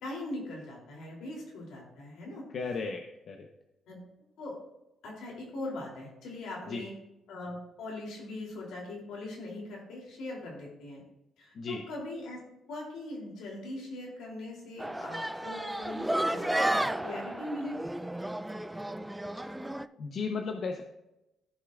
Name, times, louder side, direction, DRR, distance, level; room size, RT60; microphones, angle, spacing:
voice 1, 0.0-2.4 3.9-4.0 4.4-4.6 5.0-6.9 7.3-11.0 11.4-12.4 12.7-17.8, left 2 dB, 85° left, -2 dB, 2.9 m, -41 dB
voice 2, 2.5-3.5 6.7-6.8 11.5-11.8 20.0-20.8, left 4 dB, 60° left, 3 dB, 0.9 m, -35 dB
sound 1, 14.8-19.9, right 1 dB, 10° right, 0.3 m, -32 dB
15.0 x 5.6 x 2.4 m, 0.93 s
cardioid pair, 90°, 0 cm